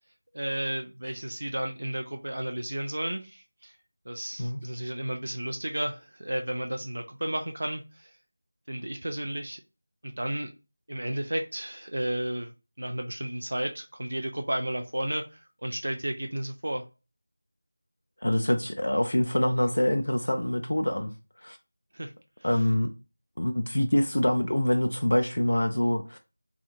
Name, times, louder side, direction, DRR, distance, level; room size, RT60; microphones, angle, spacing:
voice 1, 0.3-3.7 4.1-8.1 8.7-9.6 10.0-10.5 10.9-12.5 12.8-16.8 21.9-22.1, right 1 dB, 60° right, 0.4 m, -33 dB
voice 2, 18.2-21.1 21.4-21.6 22.4-22.9 23.4-26.2, left 1 dB, 60° left, 0.3 m, -25 dB
2.9 x 2.4 x 2.5 m
figure-of-eight pair, 170°, 0 cm